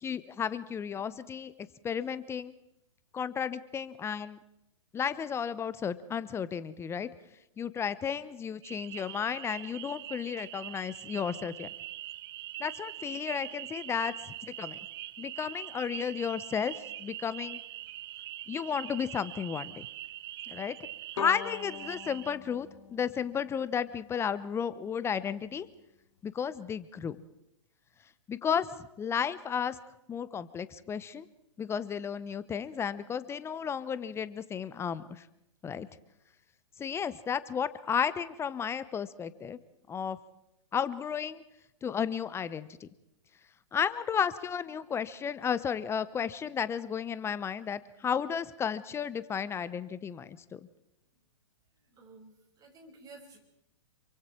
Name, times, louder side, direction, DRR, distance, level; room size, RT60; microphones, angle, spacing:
voice 1, 0.0-1.5 1.8-2.5 3.1-4.4 4.9-7.1 7.6-11.7 12.6-14.8 15.2-17.6 18.5-19.9 20.5-20.7 21.2-25.7 26.2-27.2 28.3-28.7 29.0-29.8 30.1-31.3 31.6-35.3 35.6-35.9 36.8-39.6 39.9-40.2 40.7-41.4 41.8-42.9 43.7-50.6, left 7 dB, 15° left, 15 dB, 0.9 m, -33 dB
sound 1, 8.6-22.4, right 15 dB, 50° right, 0.7 m, -43 dB
Bowed string instrument, 21.2-24.2, left 7 dB, 60° left, 2.8 m, -43 dB
voice 2, 51.9-53.4, right 3 dB, 20° right, 3 dB, 5.8 m, -53 dB
28.0 x 24.0 x 4.6 m, 0.82 s
hypercardioid pair, 120°, 16 cm